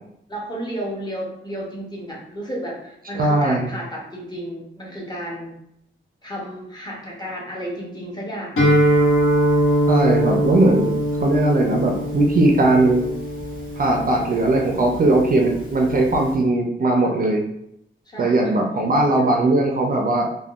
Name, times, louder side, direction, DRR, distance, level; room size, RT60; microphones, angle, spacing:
voice 1, 0.3-5.6 6.2-8.6 18.1-18.6, equal, 20° left, -4 dB, 0.6 m, -32 dB
voice 2, 3.1-3.7 9.9-10.9 11.2-13.1 13.8-17.4 18.2-20.3, right 2 dB, 45° right, 1 dB, 0.4 m, -19 dB
Guitar, 8.6-16.3, equal, 85° left, 1.0 m, -22 dB
3.4 x 2.1 x 2.3 m, 0.77 s
wide cardioid pair, 165°, 20 cm